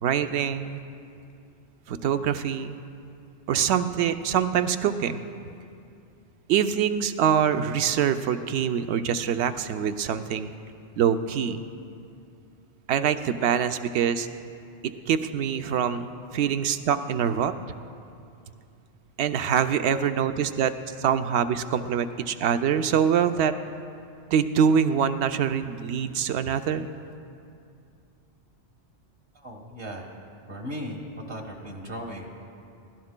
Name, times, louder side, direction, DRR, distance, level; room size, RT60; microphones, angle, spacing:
voice 1, 0.0-0.8 1.9-2.8 3.5-5.2 6.5-10.5 11.0-11.6 12.9-14.3 14.8-16.1 16.3-17.5 19.2-23.5 24.3-26.9, right 8 dB, 75° right, 9 dB, 0.8 m, -24 dB
voice 2, 29.3-30.1 30.5-31.0 31.3-32.3, equal, 55° right, -1 dB, 1.6 m, -37 dB
22.5 x 17.0 x 2.2 m, 2.5 s
omnidirectional pair, 1.2 m